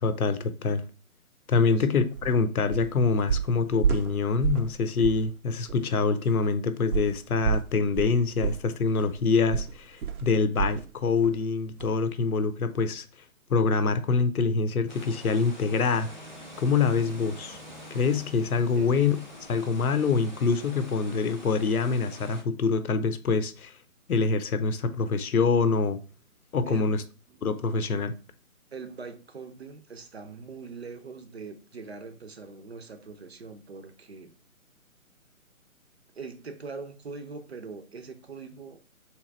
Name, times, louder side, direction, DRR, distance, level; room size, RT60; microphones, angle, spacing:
voice 1, 0.0-0.8 1.5-13.0 13.5-16.1 16.6-17.6 17.9-19.2 19.5-23.8 24.1-26.0 26.5-27.0 27.4-28.1, left 4 dB, 85° left, 0.7 m, -25 dB
sound 1, 2.1-2.3 2.7-2.9 3.3-4.7 5.0-5.3 5.7-5.8 6.9-10.9 11.2-11.4 11.8-11.9, right 7 dB, 85° right, 0.7 m, -29 dB
sound 2, 14.9-22.4, left 1 dB, 35° left, 0.4 m, -47 dB
sound 3, 15.8-21.2, right 1 dB, 10° right, 0.7 m, -50 dB
voice 2, 26.7-27.4 28.7-34.3 36.1-38.8, right 4 dB, 50° right, 0.6 m, -42 dB
3.5 x 3.0 x 4.1 m
hypercardioid pair, 165°, 43 cm